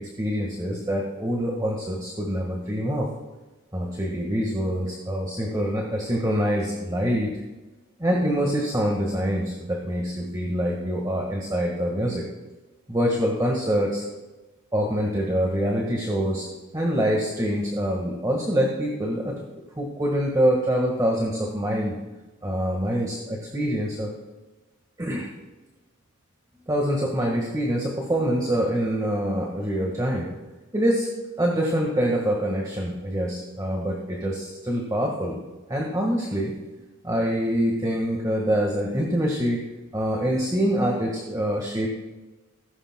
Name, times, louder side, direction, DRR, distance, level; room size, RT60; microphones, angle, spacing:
voice 1, 0.0-3.1 3.7-7.3 8.0-12.2 12.9-14.0 14.7-16.5 16.7-19.4 19.8-22.0 22.4-24.1 25.0-25.3 26.7-30.3 30.7-31.1 31.4-35.4 35.7-36.5 37.0-39.6 39.9-41.9, equal, 15° right, -1 dB, 1.5 m, -25 dB
16.5 x 15.5 x 2.2 m, 1.2 s
head